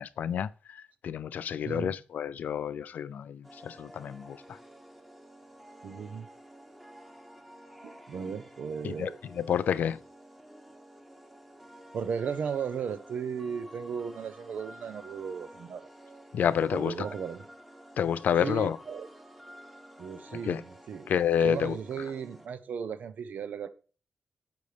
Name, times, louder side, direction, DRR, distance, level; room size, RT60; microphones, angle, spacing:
voice 1, 0.0-4.4 8.8-10.0 16.3-17.1 18.0-18.8 20.4-20.6 21.1-21.8, left 8 dB, 90° left, 0.4 m, -29 dB
voice 2, 1.6-1.9 5.8-6.3 7.8-9.2 11.9-15.9 16.7-17.4 18.4-19.1 20.0-21.1 21.4-23.7, right 6 dB, 85° right, 0.7 m, -36 dB
sound 1, 3.4-22.5, equal, 5° right, 1.2 m, -51 dB
10.5 x 8.0 x 3.4 m
wide cardioid pair, 110°, 3 cm